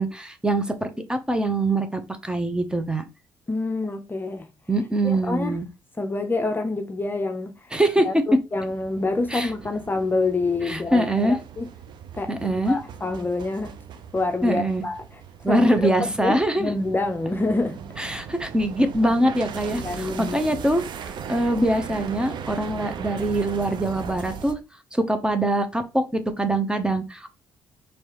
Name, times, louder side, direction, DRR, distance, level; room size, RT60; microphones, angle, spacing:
voice 1, 0.0-3.0 4.7-5.7 7.7-8.2 9.3-9.5 10.7-11.4 12.3-12.8 14.4-14.8 15.4-16.7 18.0-24.6 24.9-27.3, right 1 dB, 10° right, 0.8 m, -23 dB
voice 2, 3.5-4.5 5.0-5.6 6.0-7.5 8.0-11.7 12.1-12.3 12.7-13.8 14.1-15.2 15.5-17.8 19.8-20.4, left 3 dB, 25° left, 0.6 m, -27 dB
sound 1, 8.6-24.5, right 7 dB, 60° right, 0.6 m, -38 dB
4.6 x 3.2 x 3.0 m
supercardioid pair, 65°, 9 cm